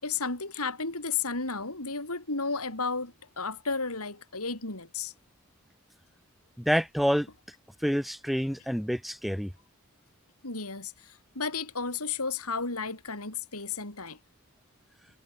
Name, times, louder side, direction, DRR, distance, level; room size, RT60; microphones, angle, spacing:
voice 1, 0.0-5.1 10.4-14.2, left 4 dB, 80° left, 5.7 m, -33 dB
voice 2, 6.6-7.3 7.8-9.5, equal, ahead, 5.5 m, -27 dB
head